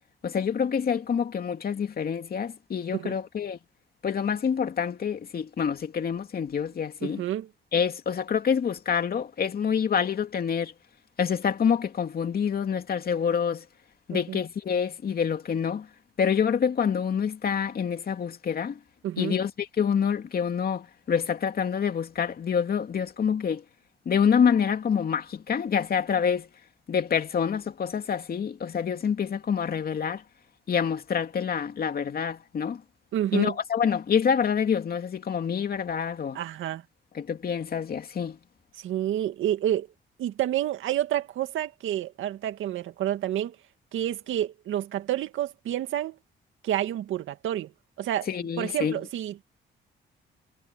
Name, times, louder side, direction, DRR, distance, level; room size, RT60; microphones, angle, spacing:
voice 1, 0.2-3.6 4.0-7.2 7.7-10.7 11.2-13.6 14.1-15.9 16.2-18.8 19.2-23.6 24.1-26.5 26.9-30.2 30.7-32.8 33.3-36.4 37.1-38.4 48.3-49.0, left 7 dB, 50° left, 2.6 m, -27 dB
voice 2, 7.0-7.5 14.1-14.4 19.0-19.4 33.1-33.5 36.3-36.8 38.8-39.9 40.2-43.6 43.9-46.2 46.6-47.7 48.0-48.3 48.6-49.4, right 12 dB, 80° right, 2.1 m, -29 dB
cardioid pair, 90°, 20 cm